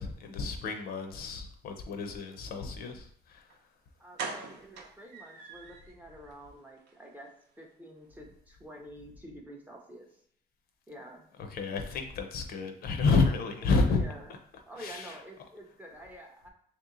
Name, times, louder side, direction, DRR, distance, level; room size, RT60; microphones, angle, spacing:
voice 1, 0.0-3.5 11.5-14.0 14.8-15.2, left 4 dB, 55° left, 5 dB, 0.6 m, -30 dB
sound 1, 3.5-3.6 4.2-5.9 6.3-6.4 6.8-6.9 7.2-7.3, right 4 dB, 75° right, 0.7 m, -41 dB
voice 2, 4.0-10.2 10.9-11.3 13.9-14.3 14.7-16.5, right 1 dB, 10° right, 0 dB, 0.5 m, -48 dB
3.2 x 2.9 x 3.7 m, 0.69 s
cardioid pair, 165°, 18 cm